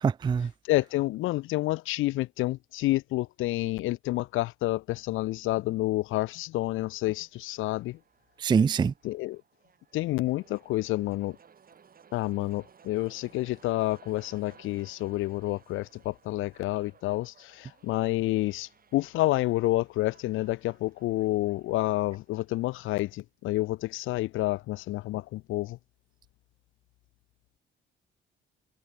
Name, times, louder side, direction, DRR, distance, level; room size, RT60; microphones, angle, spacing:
voice 1, 0.0-0.5 8.4-8.9, right 6 dB, 20° right, 0.3 m, -24 dB
voice 2, 0.6-8.0 9.0-9.4 9.9-11.4 12.1-25.8, left 18 dB, 90° left, 0.6 m, -29 dB
sound 1, 7.2-23.2, right 7 dB, 45° right, 7.6 m, -60 dB
cardioid pair, 90°, 20 cm